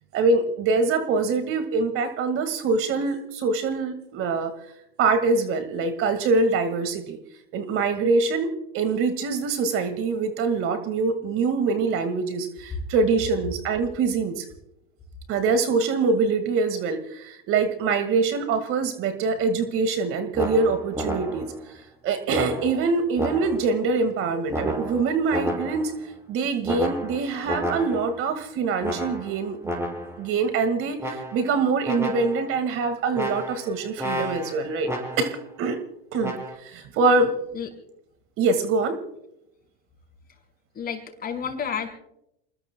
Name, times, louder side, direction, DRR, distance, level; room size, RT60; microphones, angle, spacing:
voice 1, 0.1-4.5 5.0-7.2 7.5-8.5 8.7-14.5 15.3-21.5 22.0-25.9 26.3-29.7 30.2-34.9 35.2-35.8 36.1-37.3 38.4-39.0, right 4 dB, 45° right, 9 dB, 1.8 m, -24 dB
sound 1, 20.3-21.7 22.3-23.8 24.5-26.0 26.7-28.3 28.8-30.3 31.0-31.6 31.8-32.6 33.1-35.5 36.2-36.6, equal, 10° right, 5.8 m, -31 dB
voice 2, 40.8-41.9, left 7 dB, 30° left, 3 dB, 5.3 m, -30 dB
29.0 x 20.5 x 2.2 m, 0.82 s
hypercardioid pair, 90°, 30 cm